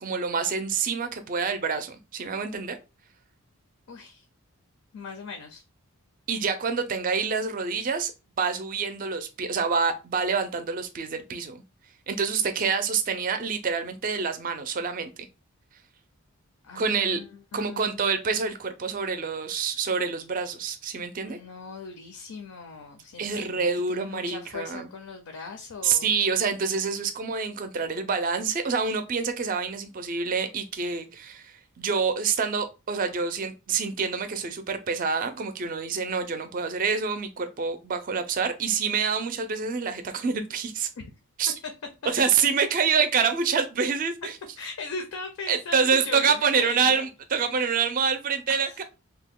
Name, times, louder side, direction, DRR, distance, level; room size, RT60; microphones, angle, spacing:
voice 1, 0.0-2.8 6.3-8.1 8.4-11.6 12.1-15.1 16.7-17.2 17.5-21.4 23.2-24.9 25.8-40.9 41.4-41.5 42.1-44.3 45.5-48.8, right 5 dB, 35° right, 0.4 m, -27 dB
voice 2, 3.9-4.2 4.9-5.6 16.6-18.1 21.2-26.2 41.0-41.1 44.6-47.1 48.5-48.8, left 4 dB, 75° left, 0.5 m, -39 dB
2.8 x 2.2 x 3.5 m
head